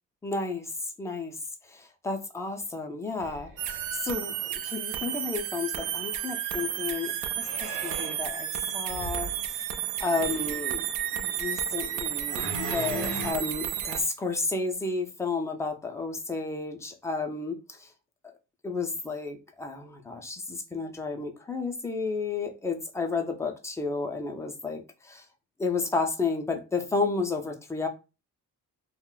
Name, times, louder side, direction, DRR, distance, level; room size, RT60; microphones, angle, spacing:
voice 1, 0.2-1.4 1.7-9.6 10.0-10.8 11.2-17.9 18.6-25.2 25.6-27.9, left 3 dB, 10° left, 0.3 m, -32 dB
sound 1, 3.2-4.0 7.4-8.2 8.9-9.3 10.0-10.6 12.3-13.3, right 2 dB, 85° right, 0.9 m, -37 dB
sound 2, 3.6-14.0, right 10 dB, 70° right, 0.5 m, -32 dB
2.4 x 2.1 x 3.7 m
cardioid pair, 155°, 32 cm